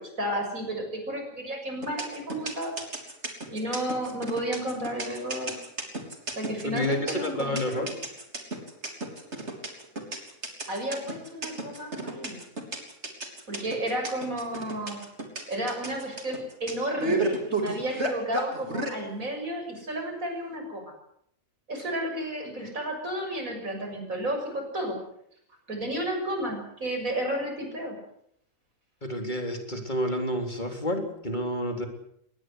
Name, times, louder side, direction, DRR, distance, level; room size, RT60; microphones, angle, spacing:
voice 1, 0.0-2.7 3.5-5.6 6.4-7.9 10.7-12.4 13.5-15.0 15.5-20.9 21.7-25.0 25.7-28.0, right 1 dB, 85° right, 3 dB, 7.3 m, -32 dB
sound 1, 1.8-18.9, right 2 dB, 55° right, 4.0 m, -32 dB
voice 2, 6.6-7.9 29.0-31.9, equal, 35° left, 4 dB, 3.8 m, -29 dB
23.0 x 19.5 x 8.1 m, 0.71 s
omnidirectional pair, 1.4 m